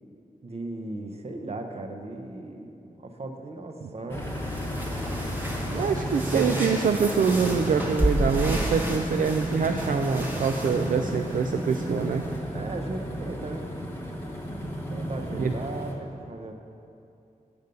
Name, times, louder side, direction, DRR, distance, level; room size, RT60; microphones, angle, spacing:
voice 1, 0.4-4.3 4.6-4.8 12.5-13.7 14.9-16.5, right 2 dB, 45° right, 4 dB, 0.7 m, -37 dB
sound 1, 4.1-15.9, equal, 15° left, 1.0 m, -33 dB
sound 2, 4.2-12.4, right 1 dB, 15° right, 1.1 m, -32 dB
voice 2, 5.7-12.2 15.4-15.5, right 6 dB, 70° right, 4 dB, 0.4 m, -25 dB
8.0 x 5.3 x 6.7 m, 2.6 s
wide cardioid pair, 135°, 14 cm